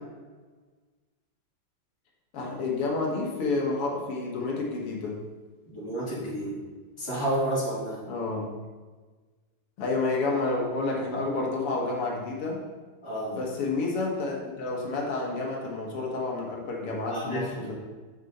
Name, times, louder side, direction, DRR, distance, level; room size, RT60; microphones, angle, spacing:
voice 1, 2.3-5.2 8.1-8.5 9.8-12.6 13.3-17.8, left 3 dB, 85° left, -2 dB, 2.3 m, -29 dB
voice 2, 5.7-6.6 7.0-8.0 13.0-13.4 17.1-17.8, right 1 dB, 15° left, -9 dB, 3.0 m, -30 dB
8.4 x 6.6 x 4.2 m, 1.3 s
omnidirectional pair, 2.4 m